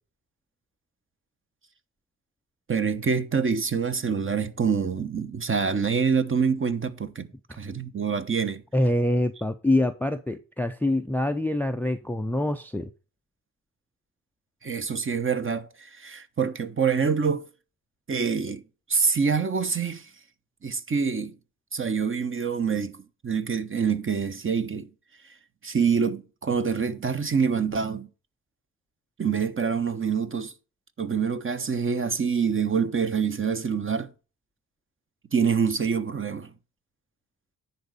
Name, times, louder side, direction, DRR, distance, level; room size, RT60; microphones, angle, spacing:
voice 1, 2.7-7.3 7.6-8.6 14.6-17.5 18.1-18.6 18.9-20.1 20.6-21.3 21.7-24.9 25.6-28.1 29.2-30.5 31.0-34.1 35.3-36.5, right 6 dB, 25° right, 1.2 m, -26 dB
voice 2, 8.7-12.9, left 1 dB, 5° left, 0.6 m, -25 dB
10.0 x 4.1 x 6.7 m
figure-of-eight pair, 40°, 45 cm